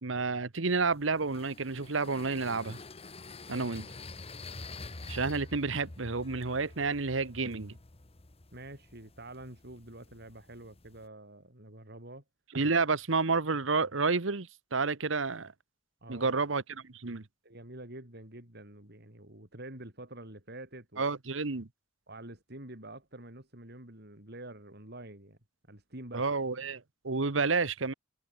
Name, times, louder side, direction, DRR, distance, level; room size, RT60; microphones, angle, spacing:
voice 1, 0.0-2.8 3.5-3.9 5.1-7.7 12.5-15.5 16.1-16.6 16.9-17.2 21.0-21.7 26.1-27.9, right 4 dB, 80° right, 1.2 m, -30 dB
sound 1, 0.7-11.1, left 3 dB, 30° left, 1.3 m, -48 dB
voice 2, 8.5-12.2 16.0-16.4 17.4-21.0 22.1-25.4 25.7-26.4, right 1 dB, 55° right, 6.3 m, -47 dB
head